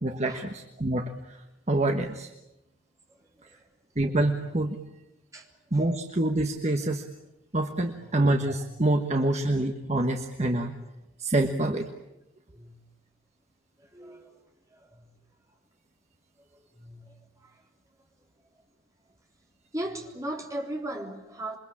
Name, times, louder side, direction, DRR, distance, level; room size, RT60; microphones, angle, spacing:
voice 1, 0.0-2.3 4.0-4.8 5.7-7.0 7.5-10.7 11.2-11.9, right 1 dB, 35° right, 5 dB, 1.4 m, -26 dB
voice 2, 13.9-14.3 16.5-17.1 19.7-21.6, right 1 dB, 15° right, 1 dB, 3.8 m, -36 dB
27.5 x 23.5 x 8.6 m, 0.92 s
head